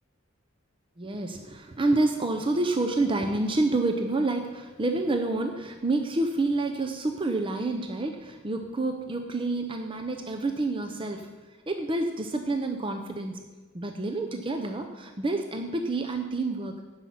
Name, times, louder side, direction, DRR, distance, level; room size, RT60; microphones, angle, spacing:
voice 1, 1.0-11.3 11.7-13.4 13.7-16.8, right 2 dB, 25° right, 5 dB, 0.6 m, -28 dB
9.8 x 5.6 x 7.5 m, 1.3 s
head